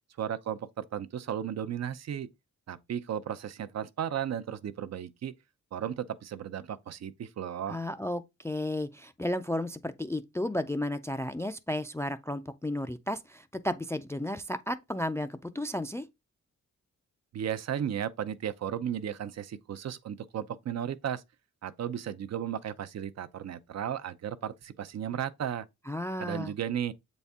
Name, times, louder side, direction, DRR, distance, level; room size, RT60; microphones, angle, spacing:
voice 1, 0.2-2.3 2.7-5.3 5.7-7.8 17.3-21.2 21.6-25.7 26.2-26.9, right 9 dB, 60° right, 0.6 m, -35 dB
voice 2, 7.7-16.1 25.9-26.5, left 1 dB, 10° left, 0.3 m, -33 dB
7.9 x 4.1 x 3.5 m
wide cardioid pair, 160°, 30 cm